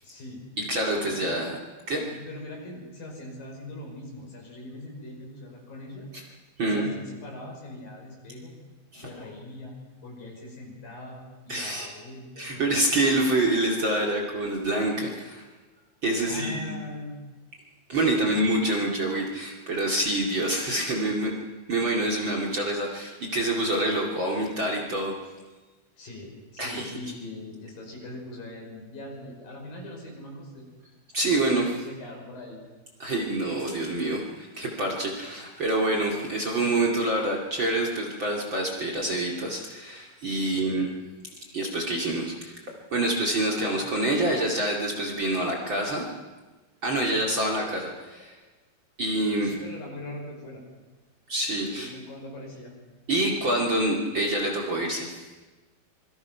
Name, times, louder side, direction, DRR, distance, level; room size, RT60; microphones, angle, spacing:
voice 1, 0.0-0.4 1.0-1.3 2.0-6.1 6.6-8.5 9.0-9.8 10.0-13.1 16.3-17.1 18.1-18.6 26.0-30.7 31.6-32.6 40.5-40.8 43.5-43.7 47.1-47.4 49.4-50.6 51.7-52.7, left 1 dB, 65° left, 0 dB, 7.3 m, -41 dB
voice 2, 0.7-1.6 1.9-2.0 6.1-6.2 6.6-6.8 8.9-9.0 11.5-11.9 12.4-15.4 16.0-16.7 17.9-21.3 21.7-25.1 26.6-26.9 31.1-31.6 33.0-40.9 41.5-42.6 42.9-46.1 46.8-48.3 49.0-49.5 51.3-51.9 53.1-55.2, right 1 dB, 35° right, 0 dB, 2.8 m, -26 dB
26.5 x 23.0 x 5.9 m, 1.2 s
omnidirectional pair, 4.3 m